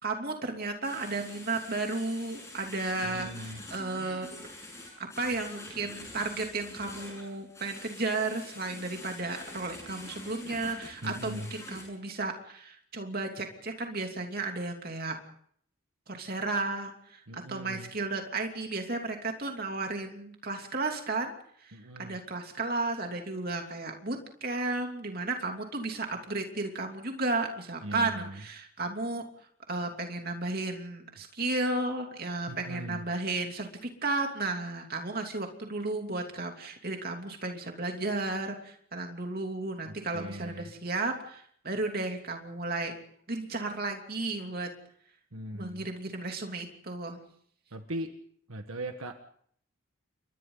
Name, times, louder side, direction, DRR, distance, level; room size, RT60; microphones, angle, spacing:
voice 1, 0.0-4.5 5.0-15.2 16.1-21.3 21.6-21.7 22.0-29.2 29.7-42.9 43.3-44.7 45.5-47.2, right 3 dB, 45° right, 3 dB, 3.0 m, -33 dB
sound 1, 0.8-11.8, left 2 dB, 15° left, 7.8 m, -46 dB
voice 2, 3.0-3.6 11.0-11.5 17.3-17.9 21.7-22.2 27.8-28.4 32.5-33.1 39.8-40.7 45.3-45.9 47.7-48.2 48.5-49.2, right 1 dB, 85° right, 6 dB, 1.6 m, -39 dB
29.5 x 23.5 x 4.0 m, 0.63 s
head